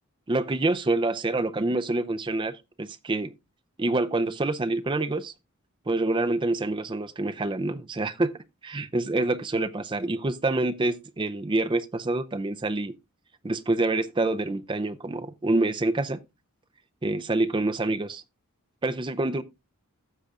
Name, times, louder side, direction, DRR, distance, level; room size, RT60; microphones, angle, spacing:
voice 1, 0.3-3.3 3.8-5.3 5.9-8.3 8.6-12.9 13.4-16.2 17.0-18.2 18.8-19.4, right 2 dB, 20° right, 0.5 m, -26 dB
15.5 x 6.5 x 2.4 m
head